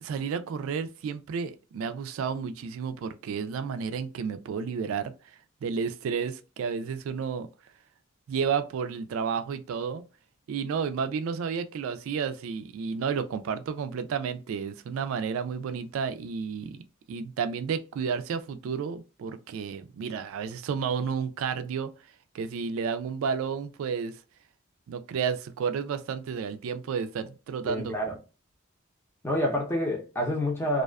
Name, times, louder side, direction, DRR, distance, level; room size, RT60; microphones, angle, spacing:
voice 1, 0.0-5.1 5.6-7.5 8.3-10.0 10.5-16.8 17.1-21.9 22.3-24.1 24.9-27.9, right 6 dB, 80° right, 0.3 m, -31 dB
voice 2, 27.7-28.1 29.2-30.8, equal, 10° left, 0.6 m, -28 dB
2.4 x 2.3 x 2.2 m
head